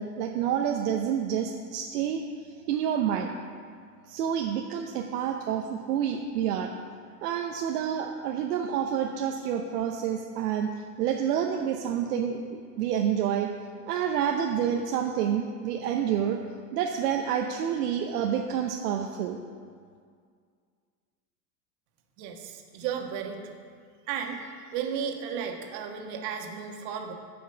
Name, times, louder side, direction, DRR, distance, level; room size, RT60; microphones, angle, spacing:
voice 1, 0.0-2.2 2.5-3.3 4.1-6.7 7.2-13.5 13.9-16.4 16.7-19.4, right 8 dB, 75° right, 3 dB, 0.8 m, -28 dB
voice 2, 22.2-23.5 24.1-27.1, right 7 dB, 55° right, 3 dB, 1.5 m, -34 dB
8.5 x 5.5 x 7.0 m, 2.1 s
hypercardioid pair, 95°, 47 cm